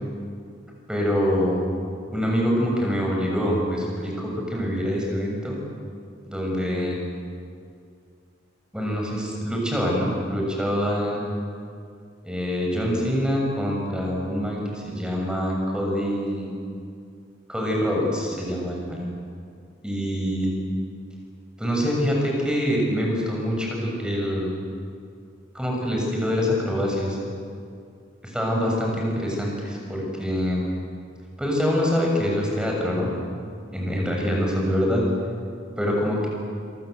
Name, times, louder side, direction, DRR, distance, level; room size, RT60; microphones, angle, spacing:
voice 1, 0.9-1.6 2.1-5.6 6.3-7.0 8.7-11.3 12.2-16.5 17.5-19.0 19.8-20.5 21.6-24.6 25.5-27.2 28.2-30.6 31.4-33.1 33.7-35.0 35.8-36.3, equal, 5° right, -1 dB, 7.1 m, -25 dB
27.0 x 24.0 x 8.2 m, 2.3 s
head